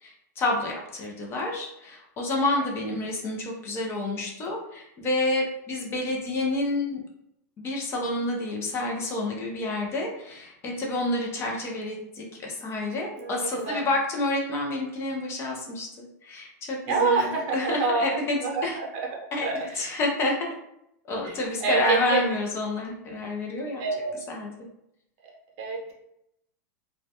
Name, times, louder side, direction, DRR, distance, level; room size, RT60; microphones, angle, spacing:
voice 1, 0.0-7.0 7.6-18.8 19.3-19.5 19.7-20.5 21.1-23.9 24.3-24.5, left 2 dB, 25° left, 0 dB, 0.4 m, -29 dB
voice 2, 13.2-13.9 16.9-18.0 18.4-18.9 19.4-20.0 21.2-22.2 23.8-24.1 25.6-25.9, right 4 dB, 50° right, -1 dB, 0.7 m, -27 dB
2.2 x 2.1 x 2.7 m, 0.80 s
supercardioid pair, 140°, 10 cm